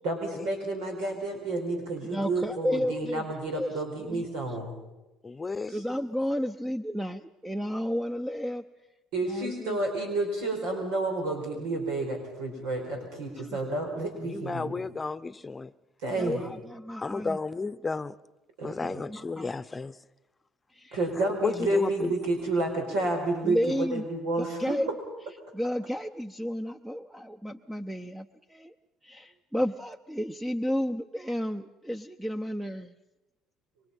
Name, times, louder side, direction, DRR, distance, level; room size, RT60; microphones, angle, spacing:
voice 1, 0.0-4.6 5.7-5.8 9.1-14.7 16.0-16.5 18.6-19.0 20.9-24.7, right 2 dB, 85° right, 2 dB, 4.7 m, -30 dB
voice 2, 2.1-3.2 3.5-3.7 4.1-4.2 5.7-8.6 9.2-9.8 13.5-13.6 16.1-17.4 18.8-19.6 20.7-21.0 23.4-24.0 24.4-24.9 25.5-28.7 29.0-32.9, equal, 10° right, 8 dB, 0.8 m, -32 dB
voice 3, 5.2-5.7 14.2-15.7 17.0-18.2 18.6-20.0 21.2-22.2, left 4 dB, 25° left, 16 dB, 0.8 m, -32 dB
27.5 x 23.5 x 5.5 m, 1.0 s
supercardioid pair, 75°, 0 cm